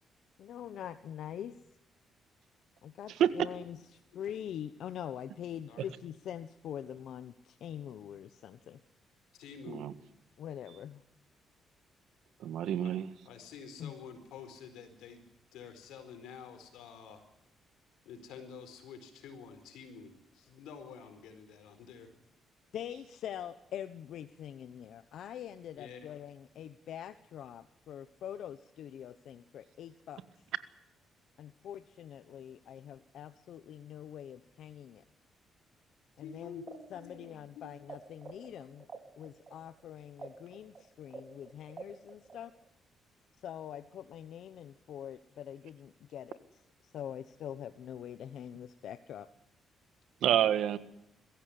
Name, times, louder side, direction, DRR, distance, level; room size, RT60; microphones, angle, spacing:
voice 1, 0.4-1.6 2.8-8.8 10.4-11.0 13.8-13.9 22.7-30.2 31.4-35.0 36.2-36.6 36.9-38.9 39.2-42.5 43.4-49.3, left 10 dB, 70° left, 11 dB, 1.0 m, -44 dB
voice 2, 9.3-9.8 12.8-13.0 13.2-15.2 15.5-17.2 18.0-22.1 25.8-26.1 36.2-37.9, left 6 dB, 90° left, 9 dB, 4.4 m, -49 dB
voice 3, 12.4-13.1 50.2-50.8, right 10 dB, 80° right, 13 dB, 1.6 m, -27 dB
sound 1, 36.6-37.9 38.2-42.7, right 5 dB, 40° right, 3.8 m, -48 dB
22.5 x 15.0 x 9.8 m, 0.83 s
cardioid pair, 90°, 0 cm